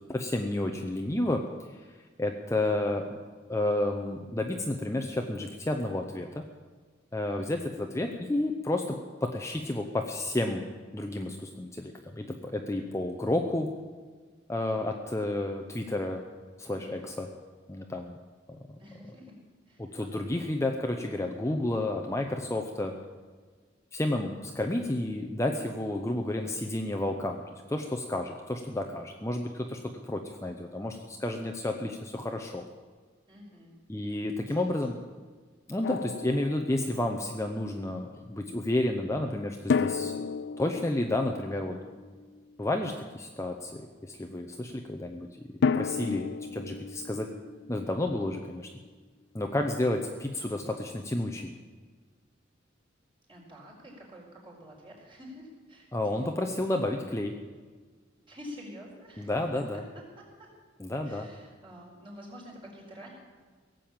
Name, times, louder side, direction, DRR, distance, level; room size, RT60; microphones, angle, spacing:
voice 1, 0.1-1.4 2.2-3.2 3.5-6.4 7.1-10.6 10.9-13.7 14.5-16.2 16.6-17.3 17.7-18.2 19.8-22.9 23.9-27.4 27.7-32.7 33.9-35.0 35.7-40.3 40.6-41.8 42.6-45.3 45.7-47.3 47.7-48.7 49.3-51.5 55.9-57.4 59.2-59.8 60.8-61.3, left 1 dB, 15° left, 3 dB, 0.7 m, -31 dB
voice 2, 18.8-19.3 19.6-20.2 33.3-33.8 34.1-34.2 34.5-35.1 53.3-56.5 58.3-59.4 59.7-60.5 61.0-63.1, equal, 25° right, -3 dB, 4.4 m, -48 dB
Drum, 35.8-37.2 39.7-42.7 45.6-48.5, left 5 dB, 60° left, 0.4 m, -33 dB
17.5 x 7.7 x 8.8 m, 1.5 s
head